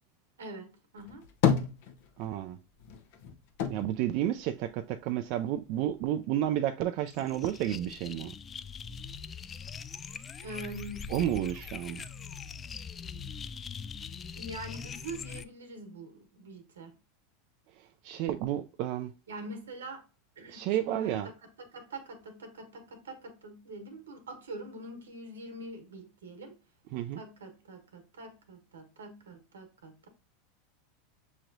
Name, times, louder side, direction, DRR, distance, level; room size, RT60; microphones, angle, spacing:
voice 1, 0.4-1.2 10.4-11.1 14.3-16.9 19.3-20.0 20.4-21.3 21.7-26.5 27.2-30.1, right 1 dB, 90° right, 1.2 m, -44 dB
sound 1, 1.0-2.5 2.8-5.2 5.5-6.4, left 8 dB, 65° left, 0.7 m, -31 dB
voice 2, 2.2-2.6 3.7-8.3 11.1-12.0 17.8-19.1 20.5-21.3 26.9-27.2, right 12 dB, 55° right, 0.3 m, -31 dB
sound 2, 7.1-15.5, left 6 dB, 25° left, 0.3 m, -42 dB
6.2 x 3.0 x 2.6 m
hypercardioid pair, 105°, 0 cm